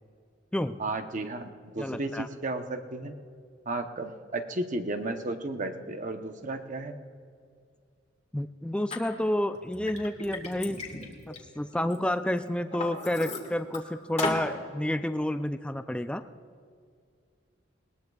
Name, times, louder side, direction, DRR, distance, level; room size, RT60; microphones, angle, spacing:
voice 1, 0.8-3.1 3.7-7.0, right 2 dB, 40° right, 6 dB, 0.8 m, -33 dB
voice 2, 1.8-2.3 8.3-10.8 11.3-16.2, left 1 dB, 5° left, 9 dB, 0.3 m, -30 dB
Liquid, 8.9-9.0 9.5-12.0 12.4-13.8 14.2-14.5, left 3 dB, 35° left, 1.8 m, -35 dB
20.5 x 20.0 x 2.4 m, 2.2 s
head